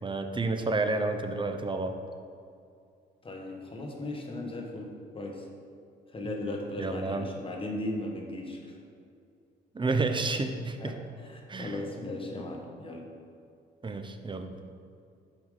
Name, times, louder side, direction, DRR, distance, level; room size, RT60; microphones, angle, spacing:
voice 1, 0.0-1.9 6.8-7.3 9.7-10.9 11.5-11.8 13.8-14.5, right 3 dB, 25° right, 6 dB, 0.7 m, -30 dB
voice 2, 3.2-5.5 6.1-8.8 10.8-10.9 11.2-13.1, left 1 dB, 25° left, 1 dB, 1.4 m, -37 dB
7.2 x 5.4 x 5.0 m, 2.4 s
cardioid pair, 90°, 20 cm